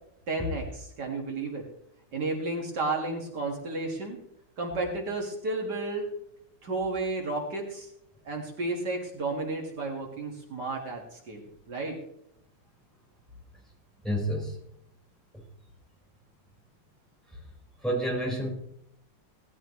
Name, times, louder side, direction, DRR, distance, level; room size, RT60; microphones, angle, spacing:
voice 1, 0.3-1.6 2.1-4.2 4.6-6.1 6.6-7.9 8.2-12.0, right 2 dB, 65° right, 0 dB, 2.5 m, -32 dB
voice 2, 14.0-14.5 17.8-18.5, right 1 dB, ahead, -4 dB, 4.9 m, -28 dB
18.0 x 13.5 x 3.2 m, 0.71 s
omnidirectional pair, 1.9 m